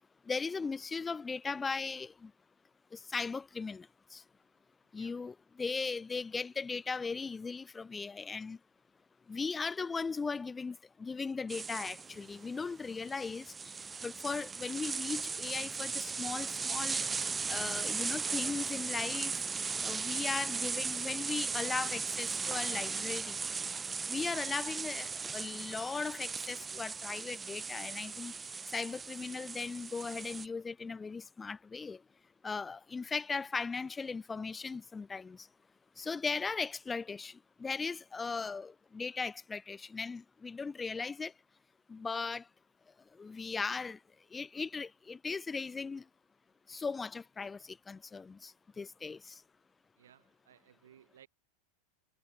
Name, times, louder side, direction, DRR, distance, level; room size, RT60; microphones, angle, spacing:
voice 1, 0.3-2.3 2.9-4.2 4.9-8.6 9.3-13.7 14.0-17.1 17.5-19.4 19.8-23.4 24.1-28.3 28.7-32.0 32.4-35.5 36.0-41.3 41.9-42.4 43.2-44.0 44.3-46.0 46.7-49.4, left 4 dB, 15° left, 1.0 m, -38 dB
sound 1, 11.5-30.5, right 5 dB, 15° right, 0.3 m, -37 dB
voice 2, 50.0-51.3, right 10 dB, 85° right, 6.5 m, -61 dB
hypercardioid pair, 115°, 0 cm